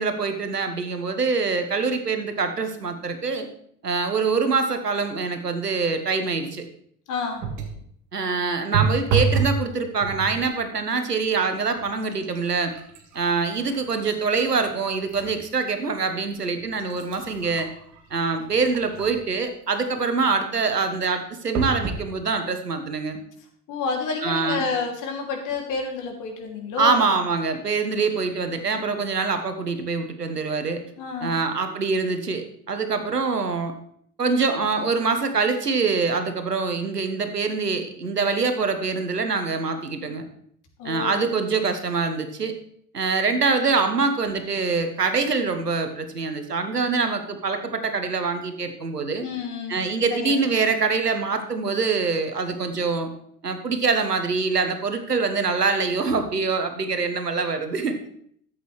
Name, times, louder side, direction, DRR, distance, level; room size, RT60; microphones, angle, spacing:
voice 1, 0.0-3.5 3.8-6.6 8.1-12.7 13.1-17.7 18.1-23.2 24.2-24.7 26.8-30.8 31.2-33.7 34.2-40.3 40.8-42.5 42.9-49.3 49.7-53.1 53.4-58.0, right 4 dB, 85° right, 7 dB, 1.3 m, -24 dB
voice 2, 7.1-7.4 23.7-27.0 31.0-31.4 40.8-41.3 49.2-49.8 50.1-50.3, left 4 dB, 40° left, 2 dB, 2.6 m, -29 dB
sound 1, 7.4-7.8 8.7-9.6 10.0-10.5 11.2-11.4 11.8-15.3 15.8-15.9 16.6-19.3 21.5-22.1 22.7-22.8 23.1-23.2, right 5 dB, 40° right, 2.0 m, -29 dB
13.0 x 7.9 x 3.2 m, 0.66 s
figure-of-eight pair, 75°, 46 cm